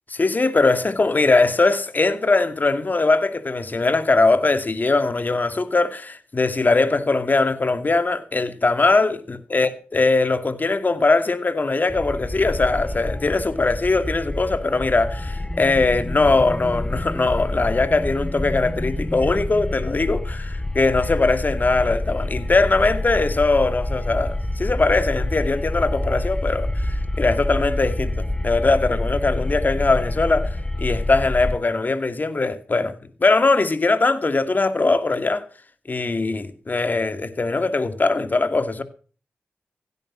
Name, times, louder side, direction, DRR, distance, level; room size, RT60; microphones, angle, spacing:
voice 1, 0.1-32.9 33.2-35.4 35.9-38.8, left 3 dB, 45° left, 2.3 m, -21 dB
sound 1, 11.9-31.6, left 1 dB, 15° left, 2.3 m, -27 dB
16.5 x 11.0 x 6.2 m
cardioid pair, 45°, 4 cm